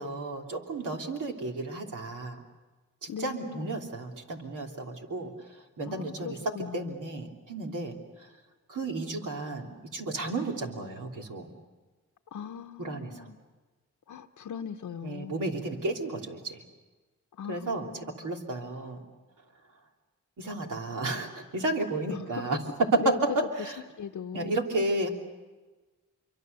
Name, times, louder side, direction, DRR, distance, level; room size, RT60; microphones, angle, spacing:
voice 1, 0.0-2.4 3.0-8.3 8.7-11.5 12.8-13.3 15.0-16.6 17.5-17.9 18.2-19.0 20.4-22.6 23.3-23.7 24.3-25.1, right 2 dB, 80° right, 3.3 m, -33 dB
voice 2, 3.1-3.7 5.8-6.9 12.3-13.4 14.1-15.4 17.3-18.3 22.1-22.6 23.0-23.2 23.6-23.7 24.0-24.6, left 7 dB, 80° left, 0.9 m, -39 dB
26.5 x 24.5 x 6.9 m
cardioid pair, 65°, 31 cm